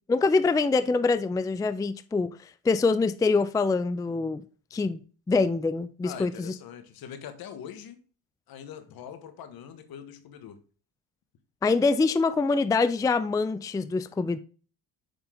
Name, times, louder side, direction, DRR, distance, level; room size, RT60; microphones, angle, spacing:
voice 1, 0.1-4.4 4.7-5.0 5.3-6.5 11.6-14.4, left 4 dB, 10° left, 0.4 m, -25 dB
voice 2, 6.0-8.0 8.5-10.6, left 8 dB, 70° left, 1.6 m, -43 dB
7.2 x 5.3 x 3.8 m
cardioid pair, 100°, 38 cm